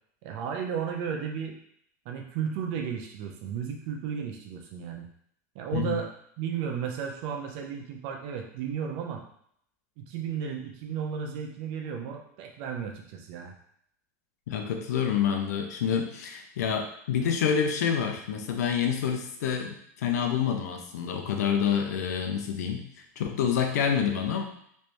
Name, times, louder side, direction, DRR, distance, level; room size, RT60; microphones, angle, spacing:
voice 1, 0.2-1.6 2.0-5.1 5.5-6.1 6.4-9.2 10.0-13.5, right 7 dB, 55° right, 2 dB, 0.7 m, -34 dB
voice 2, 14.5-22.8 23.2-24.5, left 7 dB, 85° left, 4 dB, 0.7 m, -27 dB
3.3 x 3.1 x 3.0 m, 0.68 s
supercardioid pair, 135°, 9 cm